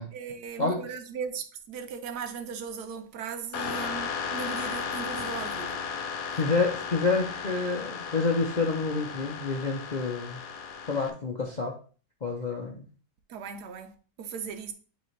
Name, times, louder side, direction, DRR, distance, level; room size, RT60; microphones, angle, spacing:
voice 1, 0.1-5.8 13.3-14.7, right 6 dB, 80° right, 1.3 m, -38 dB
sound 1, 3.5-11.1, left 6 dB, 65° left, 1.1 m, -35 dB
voice 2, 6.4-10.4 10.9-11.7 12.2-12.9, left 4 dB, 50° left, 0.5 m, -28 dB
9.0 x 3.4 x 3.2 m
omnidirectional pair, 1.7 m